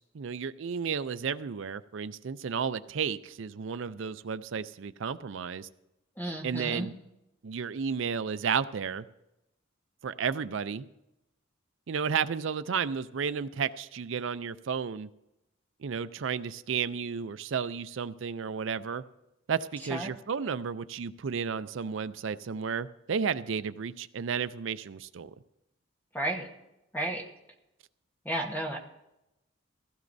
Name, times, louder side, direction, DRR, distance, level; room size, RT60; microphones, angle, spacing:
voice 1, 0.0-5.7 6.4-6.9 7.4-9.1 10.0-10.9 11.9-15.1 15.8-19.0 19.5-25.3, right 6 dB, 70° right, 14 dB, 0.4 m, -32 dB
voice 2, 6.2-6.9 19.9-20.1 26.1-26.5 26.9-27.2 28.2-28.8, right 1 dB, 10° left, 1 dB, 1.1 m, -32 dB
16.0 x 14.5 x 2.6 m, 0.91 s
head